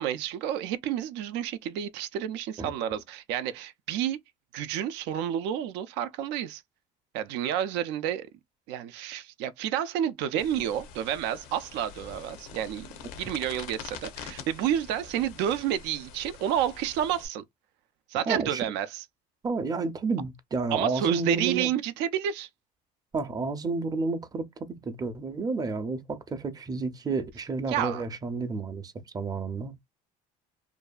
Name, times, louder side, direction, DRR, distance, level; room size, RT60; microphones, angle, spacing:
voice 1, 0.0-4.2 4.5-6.6 7.1-8.3 8.7-12.9 13.2-17.4 18.1-19.0 20.7-22.5 27.7-28.0, right 10 dB, 75° right, 0.4 m, -30 dB
sound 1, 10.4-17.3, left 6 dB, 85° left, 0.7 m, -45 dB
voice 2, 18.3-18.7 19.4-21.7 23.1-29.8, right 4 dB, 20° right, 0.5 m, -31 dB
2.6 x 2.3 x 2.3 m
supercardioid pair, 100°, 18 cm